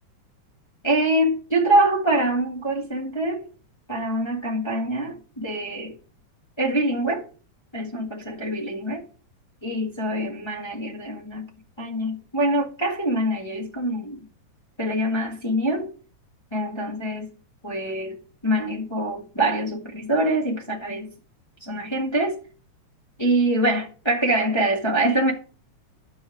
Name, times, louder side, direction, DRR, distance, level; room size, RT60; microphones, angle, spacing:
voice 1, 0.8-3.4 3.9-5.9 6.6-7.2 7.7-9.0 9.6-11.5 11.8-14.2 14.8-15.9 16.5-17.3 17.6-18.2 18.4-21.1 21.6-22.3 23.2-25.3, right 1 dB, 15° left, 1.0 m, -24 dB
10.5 x 6.2 x 4.8 m
omnidirectional pair, 3.4 m